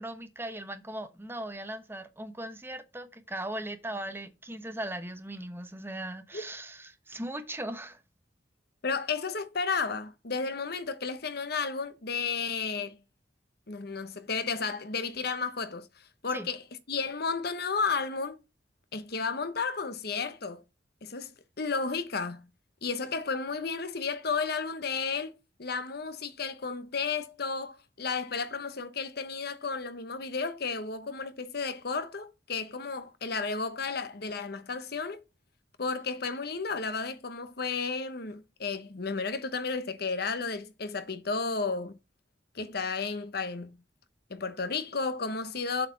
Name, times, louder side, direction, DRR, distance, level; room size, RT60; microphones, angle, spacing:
voice 1, 0.0-8.0 16.3-16.5, right 1 dB, 10° right, 1.0 m, -38 dB
voice 2, 8.8-13.0 13.7-15.9 16.2-16.6 16.9-18.4 18.9-20.6 21.0-22.5 22.8-25.3 25.6-35.2 35.8-42.0 42.5-43.8 44.3-45.9, left 4 dB, 60° left, 1.0 m, -33 dB
7.8 x 4.8 x 5.8 m
head